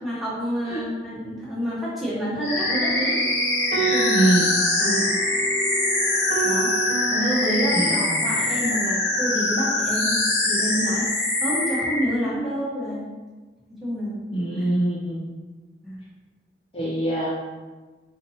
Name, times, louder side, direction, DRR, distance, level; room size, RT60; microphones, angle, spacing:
voice 1, 0.0-3.2 3.7-4.3 4.8-5.2 6.4-6.7 7.1-13.1 13.7-14.2 14.6-14.7 15.8-16.0, equal, ahead, -9 dB, 1.0 m, -28 dB
sound 1, 2.4-12.1, left 2 dB, 80° left, 1.1 m, -23 dB
sound 2, 2.5-9.0, right 5 dB, 75° right, 0.6 m, -30 dB
voice 2, 4.1-4.5 7.7-8.1 14.3-15.2 16.7-17.3, right 1 dB, 30° left, -6 dB, 0.4 m, -24 dB
4.3 x 2.6 x 2.8 m, 1.3 s
head